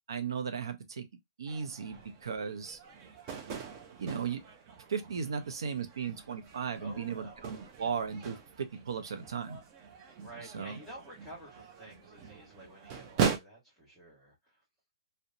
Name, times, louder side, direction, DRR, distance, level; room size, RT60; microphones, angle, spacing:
voice 1, 0.1-1.1 1.4-2.8 4.0-4.4 4.9-9.6 10.4-10.8, right 6 dB, 85° right, 0.6 m, -36 dB
sound 1, 1.5-13.4, right 6 dB, 30° right, 0.6 m, -40 dB
voice 2, 6.8-7.5 10.2-14.3, right 1 dB, ahead, 1.2 m, -50 dB
2.8 x 2.1 x 2.5 m
hypercardioid pair, 155°, 2 cm